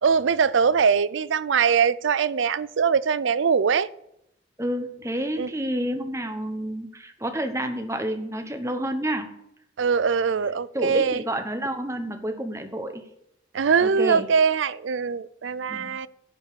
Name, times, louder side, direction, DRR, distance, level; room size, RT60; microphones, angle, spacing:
voice 1, 0.0-3.9 5.4-5.5 9.8-11.2 13.5-16.1, right 6 dB, 80° right, 0.4 m, -22 dB
voice 2, 4.6-9.3 10.7-13.0 13.8-14.3 15.7-16.0, right 1 dB, 15° right, 1.0 m, -29 dB
11.0 x 5.3 x 8.5 m
head